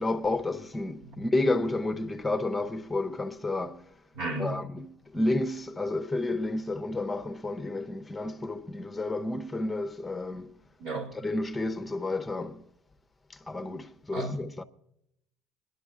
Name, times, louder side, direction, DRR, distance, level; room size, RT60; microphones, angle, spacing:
voice 1, 0.0-3.8 4.4-4.8 5.1-10.5 11.2-12.6 13.5-14.6, left 2 dB, 15° left, 0.8 m, -30 dB
voice 2, 4.1-4.6 10.8-11.1 14.1-14.3, right 2 dB, 70° right, 2.4 m, -33 dB
27.5 x 11.0 x 2.5 m
supercardioid pair, 90°, 0 cm